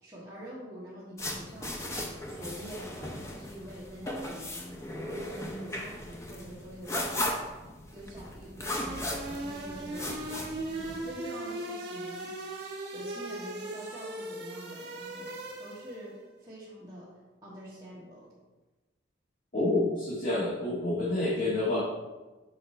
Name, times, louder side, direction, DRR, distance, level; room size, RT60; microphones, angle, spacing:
voice 1, 0.0-10.3 10.6-12.6 12.9-16.1 16.4-17.1 17.4-18.3, equal, 20° right, -12 dB, 1.7 m, -46 dB
sound 1, 1.2-11.1, left 1 dB, 15° left, 0.7 m, -37 dB
sound 2, 8.7-16.1, right 2 dB, 55° right, 1.8 m, -39 dB
voice 2, 19.5-21.8, left 2 dB, 45° left, -7 dB, 1.5 m, -28 dB
6.8 x 5.0 x 4.3 m, 1.2 s
head